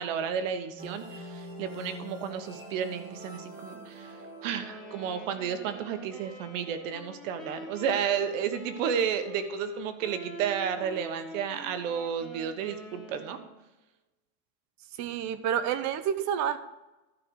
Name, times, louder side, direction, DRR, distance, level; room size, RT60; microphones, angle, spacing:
voice 1, 0.0-4.2 4.4-13.4, right 8 dB, 85° right, 9 dB, 1.3 m, -32 dB
sound 1, 0.8-8.2, equal, 20° right, 2.5 m, -46 dB
Wind instrument woodwind instrument, 4.6-13.6, left 3 dB, ahead, 2.2 m, -45 dB
voice 2, 15.0-16.6, right 9 dB, 50° right, 12 dB, 0.9 m, -29 dB
12.5 x 5.2 x 6.3 m, 1.0 s
supercardioid pair, 140°, 37 cm